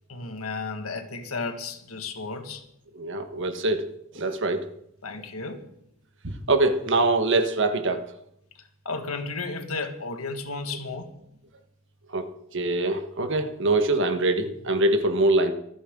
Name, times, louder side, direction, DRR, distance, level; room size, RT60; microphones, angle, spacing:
voice 1, 0.1-2.6 5.0-5.7 8.6-11.1, left 3 dB, 75° left, 1.8 m, -33 dB
voice 2, 2.9-4.7 6.2-8.0 12.1-12.3 12.5-15.5, right 2 dB, 55° right, 1.4 m, -24 dB
25.5 x 9.8 x 3.8 m
head